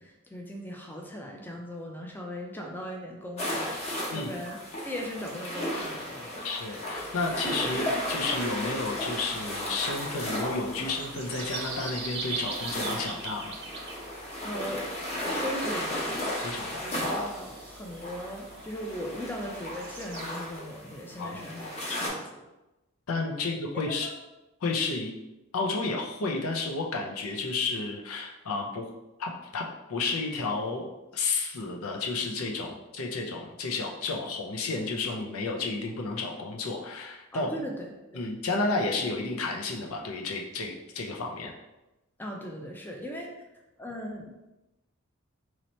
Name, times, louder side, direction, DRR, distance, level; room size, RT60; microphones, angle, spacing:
voice 1, 0.0-6.5 14.4-16.3 16.8-22.1 23.9-24.1 37.3-38.2 42.2-43.3 43.8-44.5, equal, 10° left, 0 dB, 0.4 m, -39 dB
sound 1, 3.4-22.1, left 1 dB, 30° left, 0.9 m, -35 dB
voice 2, 6.4-13.6 16.4-16.9 21.2-21.4 23.1-24.1 24.6-25.1 25.5-28.9 29.2-30.9 31.1-37.7 38.1-41.5, left 3 dB, 90° left, 0 dB, 0.6 m, -31 dB
sound 2, 6.9-20.3, right 4 dB, 55° right, 0.6 m, -43 dB
3.1 x 2.9 x 4.1 m, 0.99 s
head